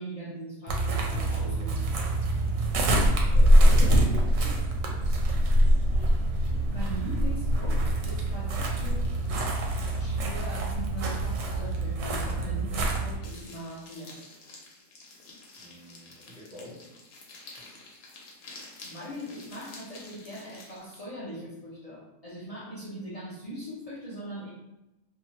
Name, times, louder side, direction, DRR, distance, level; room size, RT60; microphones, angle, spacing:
voice 1, 0.0-1.9 6.7-9.2 9.5-14.2 18.8-24.5, right 1 dB, 35° left, -8 dB, 0.7 m, -41 dB
sound 1, 0.7-13.2, right 1 dB, 70° right, 0.9 m, -24 dB
voice 2, 3.2-4.6 15.6-16.9, left 1 dB, 45° right, -7 dB, 0.7 m, -45 dB
sound 2, 13.2-21.0, left 3 dB, 80° left, 1.2 m, -49 dB
2.7 x 2.3 x 2.8 m, 0.92 s
omnidirectional pair, 1.5 m